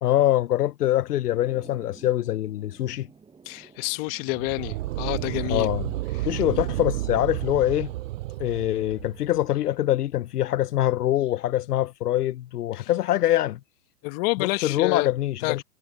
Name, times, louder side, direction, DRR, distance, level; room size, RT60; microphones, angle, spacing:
voice 1, 0.0-3.1 5.5-5.8 6.3-7.9 8.4-13.6 14.4-15.6, left 13 dB, 70° left, 0.9 m, -24 dB
sound 1, 1.3-11.7, right 5 dB, 10° right, 5.9 m, -53 dB
voice 2, 3.4-5.7 6.3-6.4 12.8-12.9 14.0-15.1 15.4-15.6, left 26 dB, 35° left, 1.4 m, -28 dB
sound 2, 4.3-9.5, right 16 dB, 55° right, 6.7 m, -31 dB
hypercardioid pair, 135°, 48 cm